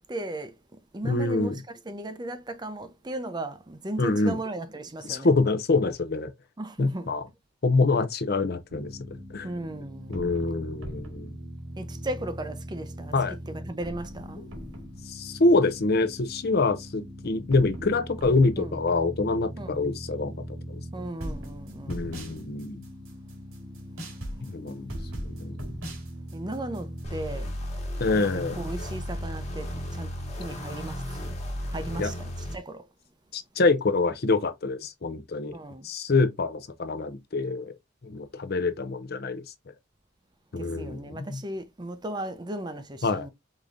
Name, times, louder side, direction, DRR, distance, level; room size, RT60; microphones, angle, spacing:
voice 1, 0.1-0.5 0.9-1.6 1.9-5.3 6.6-7.1 9.4-10.2 11.8-13.1 13.7-14.4 18.6-18.7 19.6-19.9 20.9-22.1 26.3-27.5 28.3-30.1 30.4-31.4 31.7-32.8 35.5-35.9 40.6-43.3, right 1 dB, 20° right, 0.6 m, -36 dB
voice 2, 1.0-1.6 4.0-4.4 5.0-6.3 6.8-7.3 7.6-8.9 9.3-9.5 10.1-11.3 13.1-13.4 14.4-14.5 15.1-20.3 20.7-20.8 21.9-22.8 24.4-24.9 25.2-25.6 28.0-28.6 32.0-32.1 33.3-35.6 35.8-37.7 38.0-39.4 40.5-41.4 43.0-43.3, left 3 dB, 50° left, 0.6 m, -25 dB
sound 1, 8.7-27.1, equal, 85° right, 2.0 m, -39 dB
sound 2, 27.0-32.6, equal, 35° left, 1.5 m, -34 dB
5.0 x 3.7 x 2.6 m
head